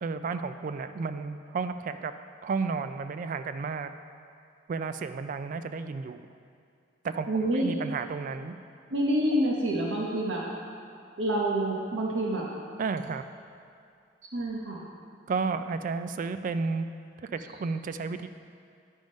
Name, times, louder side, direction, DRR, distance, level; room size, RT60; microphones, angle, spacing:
voice 1, 0.0-2.1 2.4-3.9 4.7-6.2 7.0-7.3 7.5-8.5 12.8-13.2 15.3-16.9 17.2-18.3, right 4 dB, 45° right, 10 dB, 0.3 m, -32 dB
voice 2, 7.3-7.7 8.9-10.4 11.2-12.5 14.3-14.8, right 1 dB, 80° right, -3 dB, 0.9 m, -27 dB
10.5 x 3.6 x 5.2 m, 2.4 s
head